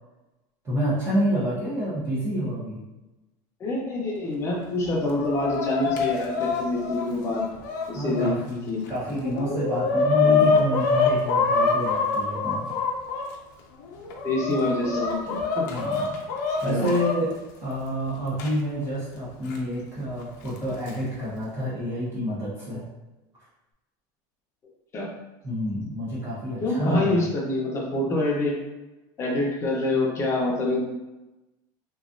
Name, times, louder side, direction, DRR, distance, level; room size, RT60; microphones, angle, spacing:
voice 1, 0.6-2.8 7.9-12.7 15.7-16.2 16.6-17.3 17.6-22.8 25.4-27.3, equal, 25° right, -10 dB, 1.2 m, -28 dB
voice 2, 3.6-7.4 7.9-8.3 8.7-8.8 10.1-10.5 14.2-15.7 16.6-16.8 24.9-25.1 26.6-28.5 29.2-30.8, left 2 dB, 25° left, -3 dB, 0.8 m, -26 dB
Chicken rooster, 4.8-8.3 8.9-9.0 9.2-13.3 13.9-17.1 18.4-18.5 19.5-19.6 20.6-20.9, left 5 dB, 90° left, 0.6 m, -25 dB
3.1 x 2.6 x 2.6 m, 1.1 s
cardioid pair, 145°, 10 cm